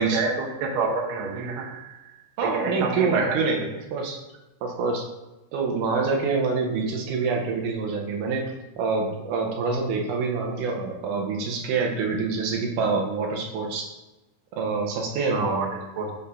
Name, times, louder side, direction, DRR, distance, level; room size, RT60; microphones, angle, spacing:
voice 1, 0.0-1.9 2.5-3.7 15.3-15.7 16.0-16.1, right 4 dB, 90° right, 0 dB, 1.1 m, -27 dB
voice 2, 2.4-3.6 3.9-4.2 4.6-5.1 5.5-13.9 14.6-15.7, right 4 dB, 70° right, 0 dB, 2.1 m, -26 dB
6.6 x 2.7 x 5.5 m, 1.0 s
omnidirectional pair, 4.0 m